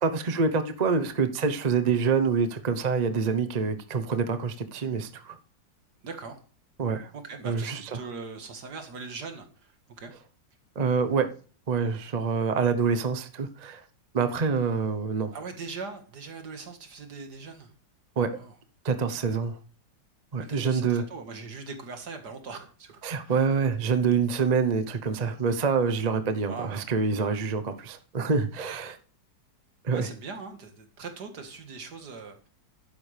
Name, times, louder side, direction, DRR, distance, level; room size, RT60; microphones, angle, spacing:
voice 1, 0.0-5.4 6.8-7.1 7.4-7.8 10.7-11.3 11.7-13.8 14.1-15.3 18.2-18.3 18.8-19.6 20.3-21.0 23.0-29.0 29.8-30.1, right 5 dB, 35° right, 0.6 m, -26 dB
voice 2, 6.0-6.4 7.1-10.1 15.3-17.7 18.3-18.5 20.5-23.4 26.5-26.8 29.9-32.4, right 4 dB, 60° right, 2.3 m, -40 dB
11.5 x 9.7 x 3.4 m
omnidirectional pair, 2.0 m